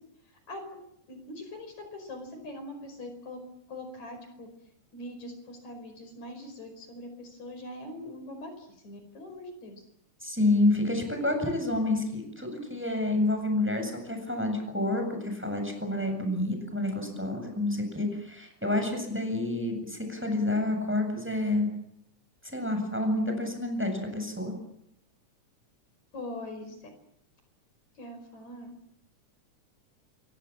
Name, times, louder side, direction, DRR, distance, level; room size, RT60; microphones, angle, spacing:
voice 1, 0.5-0.8 1.1-3.4 3.7-4.5 4.9-9.8 26.1-26.8 28.0-28.7, left 1 dB, 65° left, 7 dB, 6.3 m, -42 dB
voice 2, 10.2-21.7 22.5-24.5, left 2 dB, 5° right, 5 dB, 7.6 m, -28 dB
27.5 x 24.0 x 7.4 m, 0.77 s
omnidirectional pair, 3.5 m